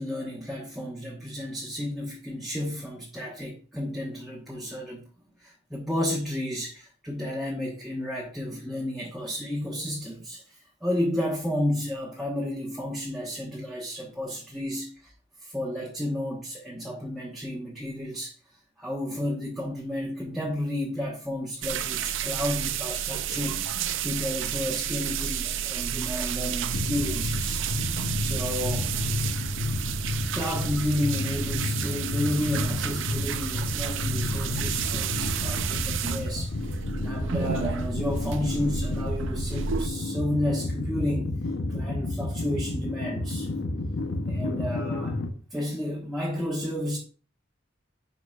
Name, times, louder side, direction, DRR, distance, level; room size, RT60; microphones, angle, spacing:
voice 1, 0.0-5.0 5.4-10.4 10.8-15.1 15.4-18.3 18.8-23.6 24.0-27.6 28.2-28.9 30.3-41.3 41.7-43.5 44.3-45.2 45.5-47.0, left 1 dB, ahead, 1.2 m, -32 dB
sound 1, 21.6-39.9, right 8 dB, 70° right, 0.4 m, -31 dB
sound 2, 26.7-45.3, left 2 dB, 65° left, 0.8 m, -31 dB
10.5 x 4.6 x 2.4 m
head